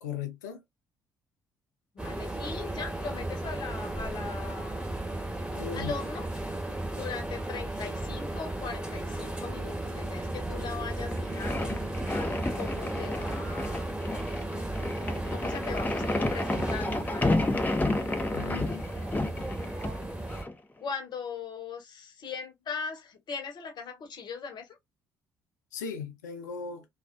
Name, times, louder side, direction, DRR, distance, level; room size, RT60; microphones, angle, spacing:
voice 1, 0.0-0.6 5.5-5.9 18.3-18.8 25.7-26.9, left 7 dB, 90° left, 0.5 m, -37 dB
voice 2, 1.9-5.1 5.7-6.3 6.9-11.7 12.1-13.9 15.3-17.4 20.8-24.8, left 5 dB, 50° left, 1.1 m, -39 dB
sound 1, 2.0-20.4, right 1 dB, 10° right, 1.1 m, -35 dB
sound 2, 11.1-20.5, left 2 dB, 20° left, 0.7 m, -31 dB
2.4 x 2.3 x 2.2 m
hypercardioid pair, 55°, 9 cm